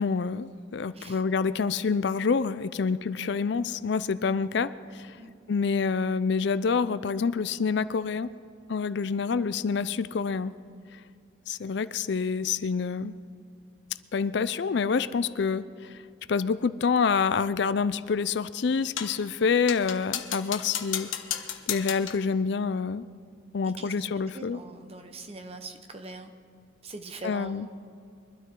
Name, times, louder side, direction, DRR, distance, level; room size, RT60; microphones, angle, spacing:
voice 1, 0.0-5.2 5.5-8.3 8.7-10.5 10.9-11.0 11.5-13.1 14.1-16.0 16.3-21.1 21.7-23.1 23.5-24.6 27.2-27.7, left 5 dB, 60° left, 15 dB, 0.4 m, -27 dB
sound 1, 19.0-19.2 19.7-22.3, left 10 dB, 75° left, 1.0 m, -34 dB
voice 2, 24.3-26.3 26.8-27.7, right 2 dB, 30° right, 6 dB, 1.0 m, -42 dB
23.0 x 12.5 x 3.8 m, 2.4 s
head